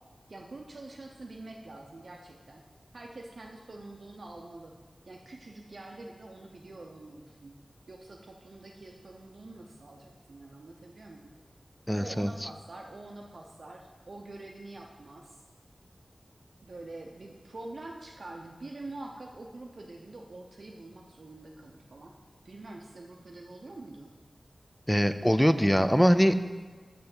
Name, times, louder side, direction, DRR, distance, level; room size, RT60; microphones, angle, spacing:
voice 1, 0.3-2.6 2.9-4.8 5.1-7.6 7.9-11.3 12.0-15.4 16.6-22.1 22.4-24.2, right 2 dB, 60° right, 0 dB, 0.6 m, -45 dB
voice 2, 11.9-12.3 24.9-26.5, equal, 5° left, 11 dB, 0.3 m, -23 dB
6.7 x 5.5 x 6.0 m, 1.4 s
wide cardioid pair, 90°, 0 cm